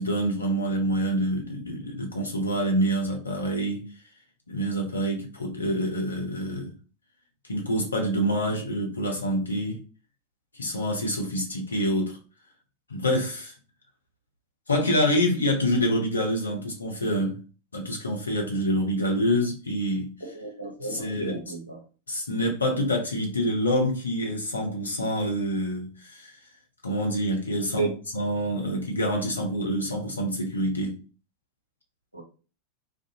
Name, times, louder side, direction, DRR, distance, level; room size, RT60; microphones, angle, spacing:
voice 1, 0.0-3.9 4.5-6.7 7.5-9.8 10.5-12.2 12.9-13.5 14.7-17.4 17.7-20.1 20.9-21.4 22.1-26.3 26.8-31.0, equal, 75° left, 0.8 m, -26 dB
voice 2, 20.2-21.8 27.8-27.9 32.1-32.2, right 4 dB, 85° right, 0.8 m, -33 dB
2.5 x 2.5 x 2.6 m
figure-of-eight pair, 90°, 0 cm